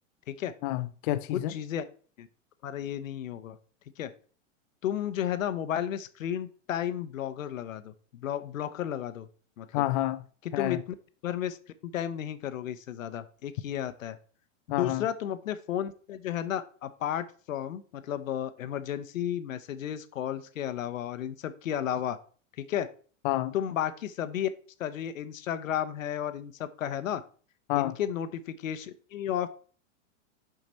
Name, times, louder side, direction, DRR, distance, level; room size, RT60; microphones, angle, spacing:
voice 1, 0.6-1.5 9.7-10.2 10.5-10.8 14.7-15.1 23.2-23.5 27.7-28.0, left 15 dB, 40° left, 0.5 m, -29 dB
voice 2, 1.3-1.8 2.2-2.3 2.6-3.6 4.0-4.1 4.8-9.3 9.6-9.8 10.6-10.8 11.2-11.6 11.8-14.2 14.7-22.2 22.6-22.9 23.5-24.5 24.8-27.2 27.8-29.5, left 10 dB, 85° left, 1.0 m, -33 dB
6.4 x 5.9 x 4.3 m
hypercardioid pair, 135°, 39 cm